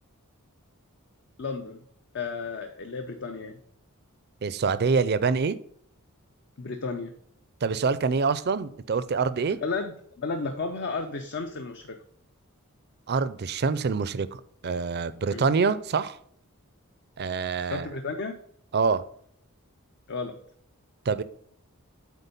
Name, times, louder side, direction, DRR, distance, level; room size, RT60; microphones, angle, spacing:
voice 1, 1.4-1.8 2.1-3.6 6.6-7.1 9.6-12.0 15.3-15.5 17.7-18.4 20.1-20.4, left 4 dB, 55° left, 0.6 m, -33 dB
voice 2, 4.4-5.6 7.6-9.6 13.1-16.2 17.2-17.9 18.7-19.0 21.1-21.2, right 5 dB, 50° right, 0.5 m, -25 dB
8.3 x 4.3 x 5.3 m
head